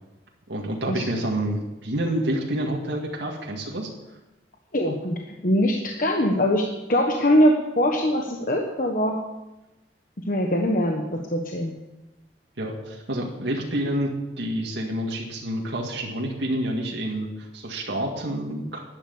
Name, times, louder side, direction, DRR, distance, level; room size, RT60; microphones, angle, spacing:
voice 1, 0.5-3.9 12.6-14.1 14.4-18.8, right 1 dB, 85° right, -1 dB, 2.0 m, -28 dB
voice 2, 4.7-9.2 10.3-11.7, equal, 50° left, 2 dB, 1.2 m, -22 dB
11.5 x 10.0 x 7.0 m, 1.0 s
head